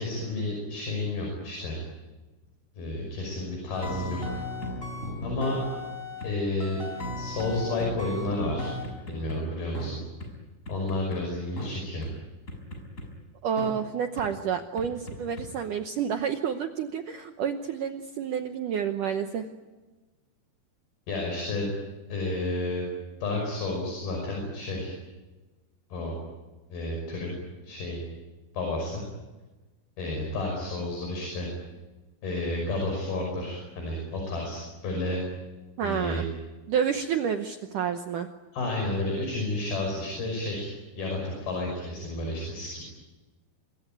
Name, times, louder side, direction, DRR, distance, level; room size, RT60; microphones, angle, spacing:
voice 1, 0.0-1.8 2.8-4.4 5.2-5.6 6.2-6.8 7.2-8.7 9.1-10.0 10.7-12.1 21.1-21.7 22.1-22.9 23.2-24.9 25.9-26.1 26.7-27.4 27.6-28.0 28.5-29.0 30.0-31.5 32.2-35.2 35.8-36.2 38.5-40.7 41.0-42.8, left 2 dB, 60° left, 1 dB, 7.6 m, -31 dB
sound 1, 3.7-6.3 6.6-9.4 9.7-9.9 10.2-10.3 10.7-11.2 11.6-11.7 12.0-12.1 12.5-13.1 13.6-13.7 14.2-14.3 14.8-15.5, left 1 dB, 15° left, 6.0 m, -35 dB
voice 2, 13.4-19.5 35.8-36.3 36.7-38.3, right 7 dB, 70° right, 6 dB, 2.0 m, -29 dB
26.5 x 22.5 x 9.2 m, 1.2 s
omnidirectional pair, 5.0 m